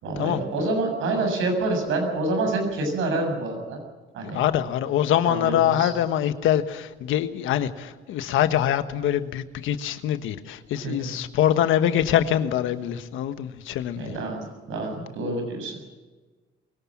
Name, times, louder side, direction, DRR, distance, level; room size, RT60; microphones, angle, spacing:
voice 1, 0.0-3.8 4.1-4.4 5.2-5.9 10.8-11.1 13.9-15.8, right 2 dB, 85° right, 4 dB, 7.1 m, -27 dB
voice 2, 4.3-14.1, left 11 dB, 90° left, 10 dB, 1.4 m, -24 dB
22.5 x 17.5 x 7.5 m, 1.3 s
cardioid pair, 90°, 20 cm